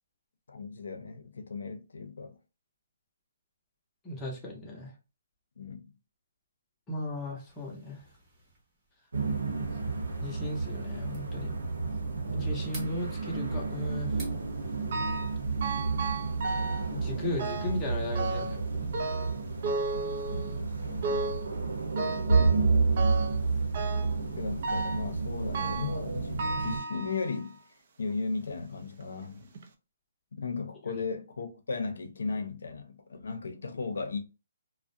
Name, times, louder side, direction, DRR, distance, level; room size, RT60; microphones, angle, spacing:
voice 1, 0.5-2.4 5.6-5.9 20.3-21.1 24.2-27.6 28.0-29.5 30.3-34.2, left 4 dB, 80° left, 0.6 m, -36 dB
voice 2, 4.0-4.9 6.9-8.0 10.2-11.5 12.3-14.1 16.9-19.1 30.9-31.0, left 1 dB, 10° left, 0.7 m, -36 dB
sound 1, 7.3-15.8, right 2 dB, 15° right, 0.9 m, -54 dB
sound 2, 9.1-26.8, right 4 dB, 85° right, 0.9 m, -30 dB
sound 3, 14.9-15.4 15.6-16.9 17.4-17.8 18.2-18.6 18.9-20.6 21.0-21.5 22.0-22.7 23.0-23.4 23.7-24.2 24.6-25.1 25.5-26.0 26.4-27.5 28.1-28.2 29.0-29.1 29.6-29.7, right 3 dB, 45° right, 0.5 m, -34 dB
2.4 x 2.0 x 2.6 m
hypercardioid pair, 165°, 0 cm